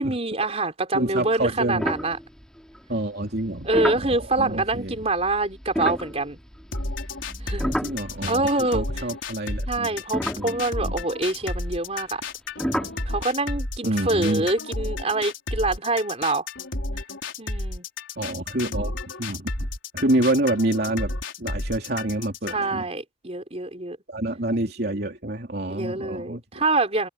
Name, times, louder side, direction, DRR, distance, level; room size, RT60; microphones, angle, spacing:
voice 1, 0.0-2.2 3.6-6.4 7.4-7.8 8.3-8.9 9.7-12.2 12.6-16.5 17.4-17.8 22.5-24.0 25.7-27.1, right 2 dB, 35° right, 4.2 m, -26 dB
voice 2, 0.9-1.9 2.9-4.9 7.6-9.9 10.4-10.9 13.8-14.5 18.2-19.7 19.9-22.8 24.1-26.6, right 1 dB, 55° right, 3.2 m, -27 dB
sound 1, 1.8-2.8 3.4-8.7 8.9-9.1 9.7-9.8 10.1-11.2 12.6-13.1, equal, 5° left, 2.1 m, -31 dB
sound 2, 6.7-22.7, left 2 dB, 90° left, 4.4 m, -32 dB
head